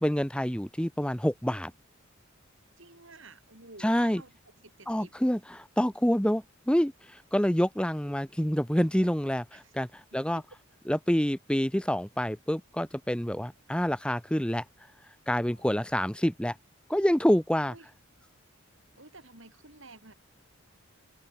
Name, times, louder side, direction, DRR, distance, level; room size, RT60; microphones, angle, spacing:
voice 1, 0.0-1.7 3.8-4.2 4.9-9.9 10.1-10.4 10.9-14.6 15.3-16.5 16.9-17.7, equal, 5° left, 1.0 m, -27 dB
voice 2, 2.8-5.1 9.5-9.7 10.1-10.5 15.4-16.1 17.6-17.9 19.0-20.1, right 2 dB, 60° right, 5.9 m, -52 dB
head